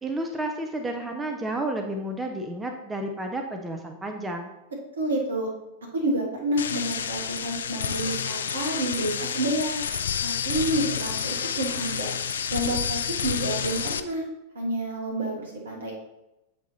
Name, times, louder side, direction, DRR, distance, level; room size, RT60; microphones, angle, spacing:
voice 1, 0.0-4.5, right 1 dB, 15° right, 3 dB, 0.6 m, -31 dB
voice 2, 5.0-5.5 5.9-9.8 10.2-12.1 12.5-14.2 14.5-15.9, right 1 dB, 70° right, -1 dB, 1.5 m, -29 dB
sound 1, 6.6-14.0, left 7 dB, 65° left, 0.3 m, -29 dB
7.6 x 3.6 x 4.0 m, 0.94 s
figure-of-eight pair, 90°, 0 cm